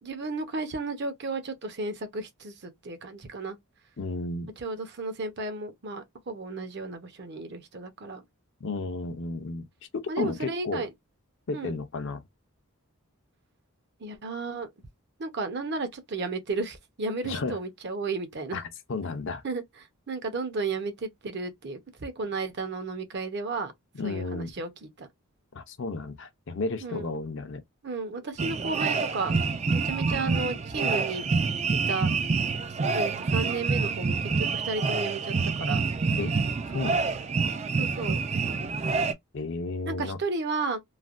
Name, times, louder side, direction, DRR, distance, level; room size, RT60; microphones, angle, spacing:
voice 1, 0.0-3.6 4.6-8.2 10.1-10.9 11.5-11.7 14.0-14.7 15.2-18.6 19.4-23.7 24.0-24.7 25.0-25.1 26.8-27.1 27.8-29.3 29.7-31.3 31.7-32.1 32.9-35.8 37.8-38.2 39.9-40.8, right 3 dB, 50° right, 0.7 m, -33 dB
voice 2, 4.0-4.5 8.6-9.7 10.2-10.9 11.5-12.2 17.2-17.6 18.5-18.6 18.9-19.4 24.0-24.5 25.5-27.6 36.2-36.4 36.7-37.1 39.3-40.2, left 3 dB, 55° left, 0.6 m, -33 dB
sound 1, 28.4-39.1, right 4 dB, 30° right, 0.3 m, -27 dB
3.2 x 2.2 x 2.4 m
head